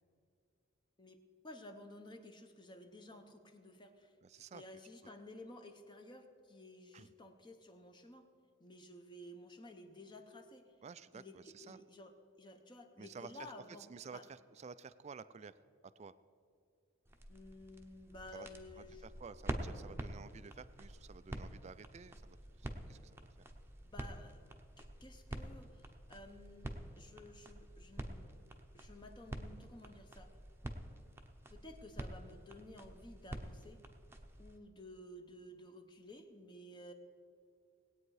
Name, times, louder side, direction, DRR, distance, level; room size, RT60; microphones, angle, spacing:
voice 1, 1.4-4.1 4.5-8.3 8.6-10.7 11.1-12.1 12.4-13.9 14.1-14.2 17.3-19.0 23.8-24.4 24.8-28.3 28.7-30.3 31.5-33.8 34.4-36.9, left 1 dB, 25° left, 6 dB, 0.8 m, -54 dB
voice 2, 4.2-4.6 6.9-7.1 10.8-11.8 13.0-13.5 13.9-15.5 16.0-16.1 18.3-18.5 18.7-23.3, right 5 dB, 35° right, 15 dB, 0.4 m, -52 dB
sound 1, 17.0-34.6, right 1 dB, 10° right, 0.8 m, -48 dB
19.0 x 8.8 x 4.8 m, 2.4 s
head